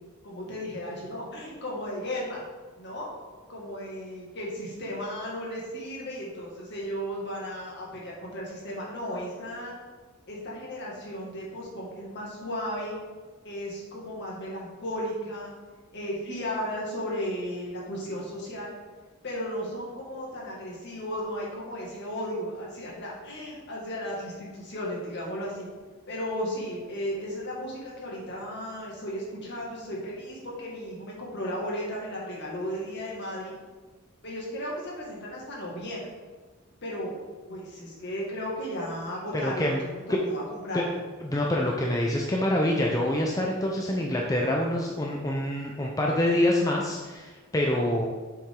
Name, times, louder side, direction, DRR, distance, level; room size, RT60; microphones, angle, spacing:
voice 1, 0.2-2.4 2.8-3.1 3.5-9.7 10.3-13.0 13.4-15.5 15.9-18.7 19.2-25.7 26.1-33.5 34.2-36.1 36.8-37.1 37.5-39.9 40.3-41.0, equal, 55° left, -4 dB, 2.1 m, -35 dB
voice 2, 39.4-39.8 40.7-40.8 41.2-48.1, left 1 dB, 15° left, -1 dB, 0.6 m, -26 dB
7.1 x 5.8 x 3.8 m, 1.4 s
head